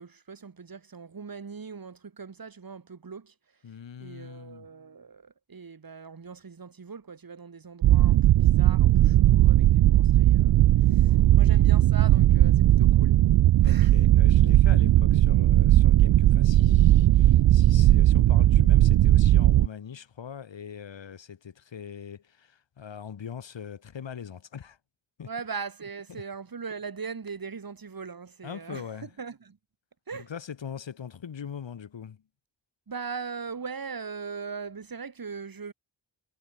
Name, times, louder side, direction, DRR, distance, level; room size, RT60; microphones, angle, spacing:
voice 1, 0.0-3.3 4.0-10.6 10.9-13.2 13.6-14.0 25.3-29.6 30.1-30.3 32.9-35.7, right 5 dB, 50° right, 4.6 m, -40 dB
voice 2, 3.6-4.7 11.0-11.7 13.6-24.8 25.2-25.3 26.1-26.2 28.4-29.1 30.1-32.2, left 7 dB, 70° left, 2.5 m, -41 dB
sound 1, 7.8-19.7, right 13 dB, 70° right, 0.5 m, -18 dB
wide cardioid pair, 125°, 45 cm